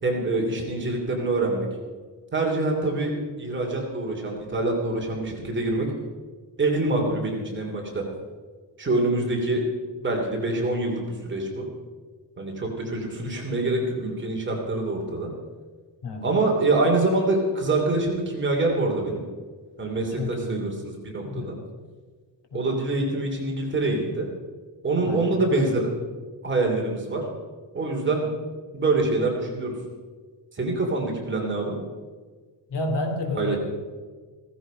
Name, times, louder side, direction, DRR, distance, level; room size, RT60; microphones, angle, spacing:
voice 1, 0.0-1.7 2.3-5.9 6.6-8.0 8.8-9.6 10.0-11.7 12.4-15.3 16.2-19.2 19.8-21.5 22.5-24.3 24.8-25.9 26.4-27.2 27.7-28.3 28.7-29.8 30.5-31.8 33.3-33.6, right 2 dB, 25° right, 0 dB, 2.8 m, -25 dB
voice 2, 20.2-20.7 21.2-21.6 22.5-22.7 25.0-25.3 32.7-33.6, left 2 dB, 65° left, 4 dB, 2.7 m, -30 dB
16.0 x 15.0 x 5.0 m, 1.5 s
cardioid pair, 175°, 44 cm